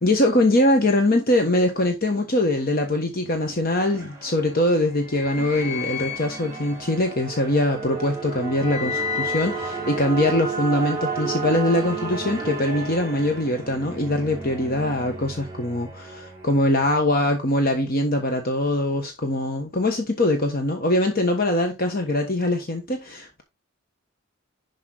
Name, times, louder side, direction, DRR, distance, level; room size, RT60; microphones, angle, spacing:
voice 1, 0.0-23.4, left 1 dB, 45° left, 1.3 m, -22 dB
sound 1, 3.3-17.0, right 1 dB, 15° right, 5.1 m, -32 dB
11.0 x 5.0 x 4.0 m
head